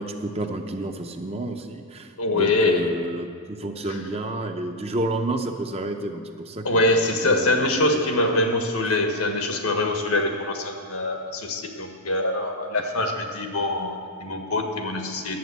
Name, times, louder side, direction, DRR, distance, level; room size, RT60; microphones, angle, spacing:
voice 1, 0.0-6.9 7.2-7.9 8.1-8.2, right 1 dB, 25° right, 5 dB, 0.7 m, -30 dB
voice 2, 2.2-2.9 3.9-4.0 6.6-15.4, left 2 dB, 85° left, 4 dB, 1.5 m, -24 dB
11.0 x 8.1 x 8.2 m, 2.3 s
head